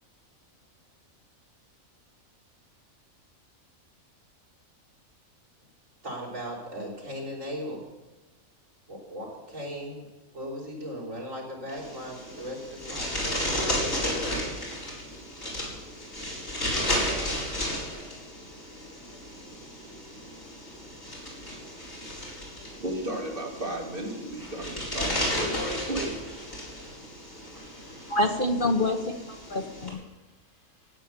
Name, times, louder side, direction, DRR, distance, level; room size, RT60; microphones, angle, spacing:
voice 1, 6.0-7.8 8.9-10.0 10.3-14.3, equal, 65° right, -2 dB, 5.3 m, -38 dB
sound 1, 11.7-29.9, left 1 dB, 70° left, 5.6 m, -34 dB
voice 2, 22.6-26.2, right 1 dB, 40° right, -2 dB, 4.0 m, -34 dB
voice 3, 27.6-30.0, left 1 dB, 40° left, 6 dB, 1.1 m, -28 dB
16.0 x 9.2 x 8.3 m, 1.1 s
omnidirectional pair, 1.4 m